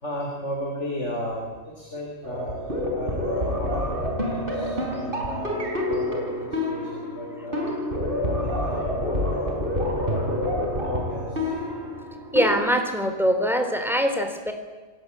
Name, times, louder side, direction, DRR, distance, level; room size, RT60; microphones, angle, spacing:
voice 1, 0.0-2.6 2.9-7.7 8.4-9.8 10.9-11.5, left 1 dB, 65° left, 0 dB, 4.0 m, -34 dB
sound 1, 2.2-12.6, left 1 dB, 45° right, 4.7 m, -28 dB
voice 2, 12.3-14.5, equal, ahead, 5 dB, 3.1 m, -23 dB
27.0 x 17.0 x 8.5 m, 1.4 s
omnidirectional pair, 1.3 m